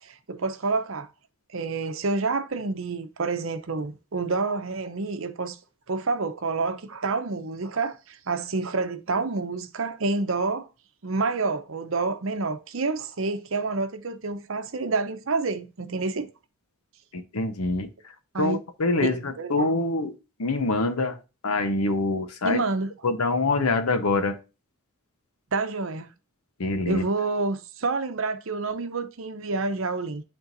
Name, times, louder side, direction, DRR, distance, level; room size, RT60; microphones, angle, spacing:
voice 1, 0.0-1.1 1.5-5.6 5.9-10.7 11.0-16.3 18.3-18.6 18.9-19.7 22.4-22.9 25.5-26.1 26.9-30.2, right 3 dB, 65° right, 0.7 m, -28 dB
voice 2, 17.1-17.9 18.4-20.1 20.4-21.2 21.4-22.6 23.0-24.4 26.6-27.1, left 3 dB, 85° left, 0.9 m, -25 dB
11.0 x 3.7 x 2.5 m
head